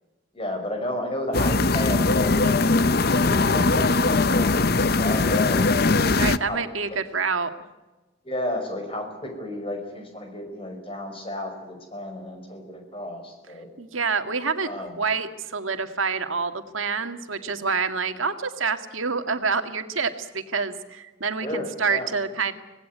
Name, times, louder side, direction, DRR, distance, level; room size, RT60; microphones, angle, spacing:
voice 1, 0.3-5.7 6.5-6.6 6.9-7.0 8.2-13.7 14.6-15.0 21.4-22.1, left 1 dB, 30° left, 4 dB, 5.3 m, -32 dB
sound 1, 1.3-6.4, left 3 dB, 50° left, 0.7 m, -20 dB
voice 2, 6.1-7.5 13.8-14.7 15.0-22.5, right 5 dB, 90° right, 7 dB, 2.0 m, -27 dB
25.5 x 18.5 x 9.5 m, 1.1 s
head